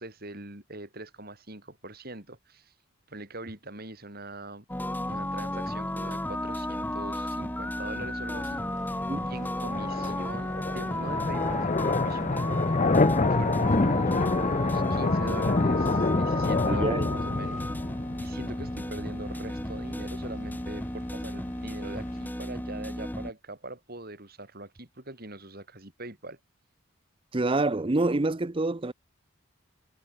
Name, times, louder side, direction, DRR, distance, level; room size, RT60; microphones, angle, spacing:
voice 1, 0.0-2.7 3.1-4.6 5.0-17.7 18.2-26.4, right 2 dB, 45° right, 5.9 m, -42 dB
sound 1, 4.7-23.3, left 1 dB, 10° left, 2.3 m, -33 dB
sound 2, 8.3-22.3, left 3 dB, 35° left, 0.6 m, -28 dB
voice 2, 16.7-17.1 27.3-28.9, right 2 dB, 25° right, 0.6 m, -26 dB
head